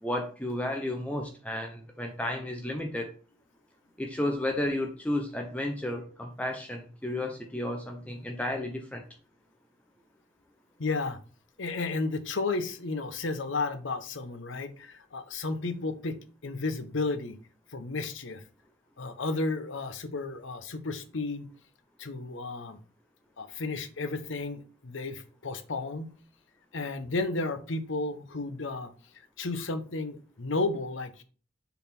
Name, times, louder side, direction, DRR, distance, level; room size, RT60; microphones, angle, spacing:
voice 1, 0.0-3.1 4.0-9.0, left 1 dB, 5° left, 2 dB, 0.7 m, -32 dB
voice 2, 10.8-11.2 11.6-16.2 16.4-17.4 17.7-18.4 19.0-21.5 22.0-22.8 23.4-26.1 26.7-28.9 29.4-31.2, left 3 dB, 70° left, 10 dB, 0.9 m, -33 dB
7.0 x 4.1 x 4.3 m, 0.39 s
head